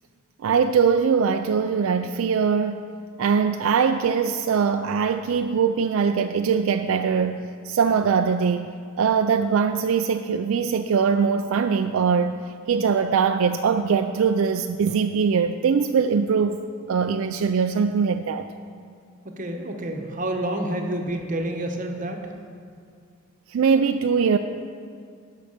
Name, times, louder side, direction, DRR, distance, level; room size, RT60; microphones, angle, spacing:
voice 1, 0.4-2.9 3.2-12.4 12.7-16.6 16.9-18.5 23.5-24.4, right 6 dB, 70° right, 7 dB, 0.3 m, -22 dB
voice 2, 19.4-22.2, right 1 dB, 40° right, 3 dB, 1.0 m, -28 dB
11.0 x 5.6 x 6.5 m, 2.2 s
head